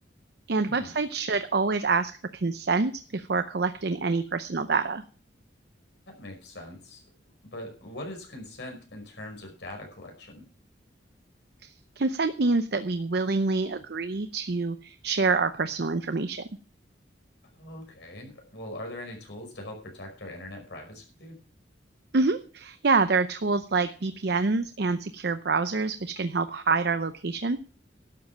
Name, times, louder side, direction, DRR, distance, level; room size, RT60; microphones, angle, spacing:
voice 1, 0.5-5.0 11.6-16.4 22.1-27.7, right 4 dB, 60° right, 10 dB, 0.7 m, -26 dB
voice 2, 6.1-7.0 7.4-10.4 17.6-21.4, left 1 dB, 70° left, 1 dB, 5.2 m, -41 dB
12.5 x 7.4 x 7.3 m, 0.41 s
head